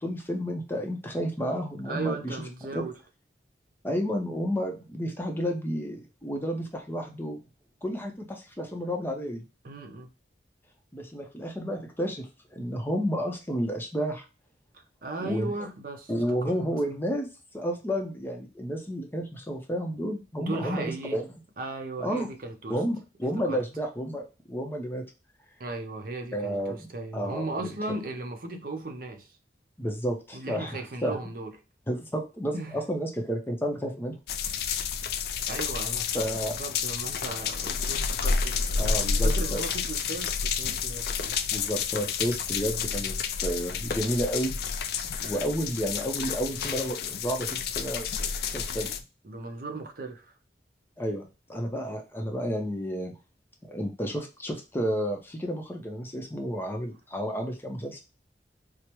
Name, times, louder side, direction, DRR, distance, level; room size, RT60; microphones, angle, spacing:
voice 1, 0.0-2.4 2.7-2.8 3.8-7.4 7.8-9.4 10.9-14.2 15.2-15.5 16.1-21.2 22.0-22.3 22.7-25.0 26.3-26.8 27.1-27.7 29.8-31.2 31.9-34.2 36.1-36.5 38.8-39.6 41.5-43.2 43.4-44.5 45.2-48.1 48.5-48.9 51.0-53.1 53.7-58.0, equal, 10° left, 0.6 m, -31 dB
voice 2, 1.9-3.0 9.6-10.1 14.7-16.5 20.4-21.2 21.6-22.8 23.4-23.6 25.6-29.3 30.3-31.5 32.5-32.8 35.5-36.3 36.6-41.4 49.2-50.3, right 2 dB, 55° right, 0.6 m, -36 dB
sound 1, 34.3-49.0, left 6 dB, 60° left, 0.4 m, -30 dB
4.7 x 2.0 x 2.9 m
head